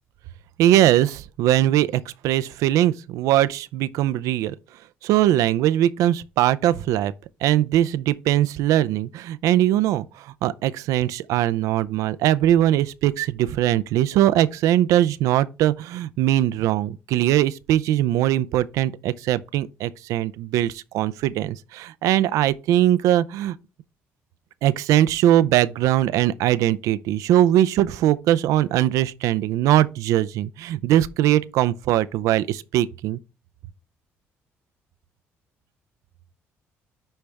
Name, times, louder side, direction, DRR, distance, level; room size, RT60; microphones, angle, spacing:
voice 1, 0.6-4.5 5.0-7.1 7.4-23.6 24.6-33.2, right 13 dB, 80° right, 0.4 m, -21 dB
9.9 x 3.4 x 3.4 m
supercardioid pair, 70°, 5 cm